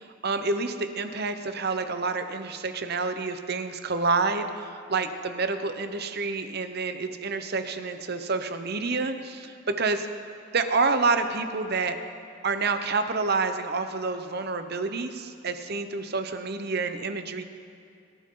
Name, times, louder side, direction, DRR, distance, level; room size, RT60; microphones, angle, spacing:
voice 1, 0.0-10.1 10.5-12.0 12.4-17.4, right 4 dB, 55° right, 8 dB, 0.9 m, -28 dB
26.0 x 12.5 x 3.9 m, 2.5 s
head